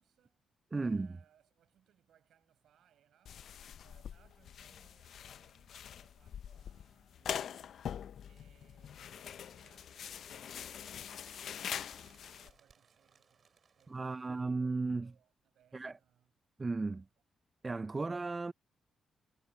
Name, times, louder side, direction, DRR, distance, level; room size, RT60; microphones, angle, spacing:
voice 1, 0.0-3.5 3.8-7.9 8.2-16.3 16.8-17.1, right 10 dB, 80° right, 7.8 m, -70 dB
voice 2, 0.7-1.1 13.9-15.1 15.7-16.0 16.6-17.0 17.6-18.5, right 3 dB, 30° right, 0.3 m, -35 dB
sound 1, 3.3-12.5, left 9 dB, 70° left, 0.4 m, -44 dB
Bird, 9.0-14.3, right 6 dB, 50° right, 3.9 m, -67 dB
cardioid pair, 85°, 0 cm